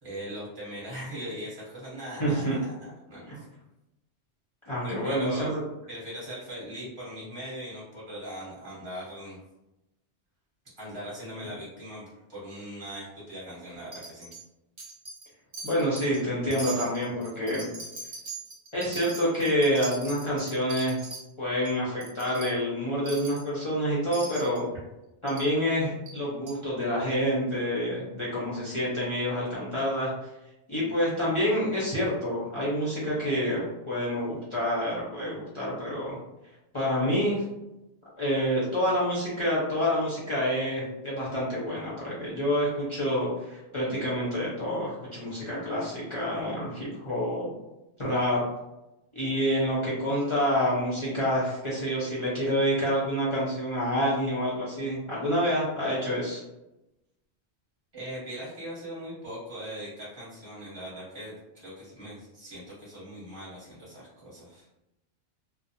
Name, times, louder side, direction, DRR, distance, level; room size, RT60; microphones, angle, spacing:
voice 1, 0.0-3.4 4.8-5.5 5.9-9.4 10.8-14.3 57.9-64.7, equal, 25° right, -8 dB, 1.0 m, -40 dB
voice 2, 2.2-2.6 3.3-3.4 4.7-5.6 15.6-17.7 18.7-21.0 21.4-24.6 25.2-30.1 30.7-36.2 36.7-37.4 38.2-47.5 48.0-48.4 49.1-56.4, equal, 35° left, -8 dB, 0.6 m, -28 dB
Wind chime, 13.9-14.4 14.8-15.3 15.5-16.2 16.5-21.2 21.6-21.7 22.0-22.5 23.1-23.5 24.1-24.6 25.3-25.5 26.1-26.2 26.5-26.6, right 3 dB, 40° right, 0.6 m, -40 dB
2.4 x 2.0 x 2.7 m, 0.95 s
omnidirectional pair, 1.2 m